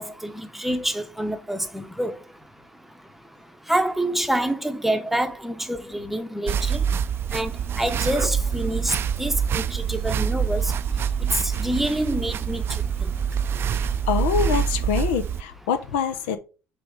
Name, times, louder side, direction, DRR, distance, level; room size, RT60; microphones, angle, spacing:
voice 1, 0.0-2.2 3.7-6.8 7.3-7.5 7.8-10.6 11.6-12.6 13.0-13.1, right 1 dB, 5° right, 0.8 m, -27 dB
sound 1, 6.5-15.4, right 7 dB, 45° right, 0.4 m, -25 dB
voice 2, 14.1-16.4, left 7 dB, 85° left, 0.7 m, -25 dB
6.1 x 3.4 x 4.8 m
supercardioid pair, 85°, 6 cm